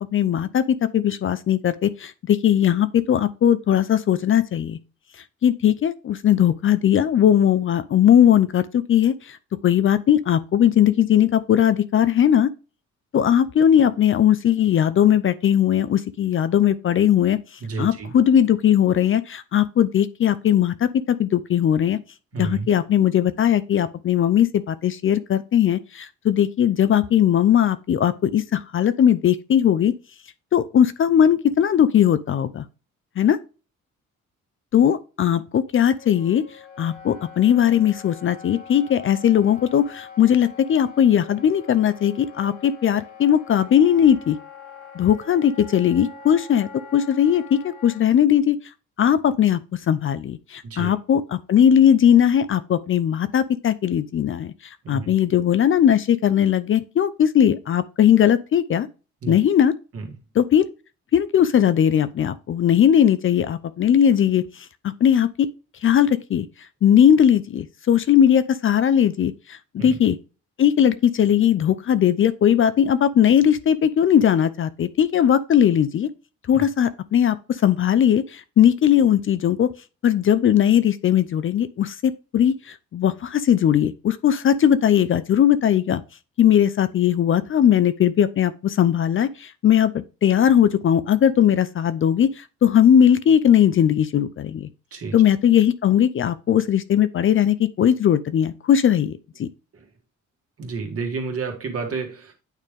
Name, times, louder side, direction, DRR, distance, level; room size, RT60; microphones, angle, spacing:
voice 1, 0.0-4.8 5.4-9.4 9.6-12.5 13.1-17.4 17.8-22.0 22.4-29.9 30.5-32.6 33.2-33.4 34.7-36.4 36.8-44.4 45.0-48.6 49.0-49.6 49.9-54.5 54.9-58.9 59.3-59.7 60.4-60.6 61.1-65.5 65.8-66.5 66.8-70.2 70.6-76.1 76.5-79.7 80.0-86.0 86.4-94.7 95.1-99.5, left 9 dB, 45° left, 0.5 m, -19 dB
voice 2, 17.6-18.1 22.3-22.7 50.6-50.9 54.8-55.1 59.2-59.4 59.9-60.0 69.8-70.0 76.5-76.6 94.9-95.2 100.6-102.3, right 4 dB, 50° right, 1.9 m, -30 dB
Wind instrument woodwind instrument, 36.0-48.0, left 5 dB, 75° left, 1.9 m, -43 dB
9.0 x 3.4 x 3.6 m
cardioid pair, 90°, 30 cm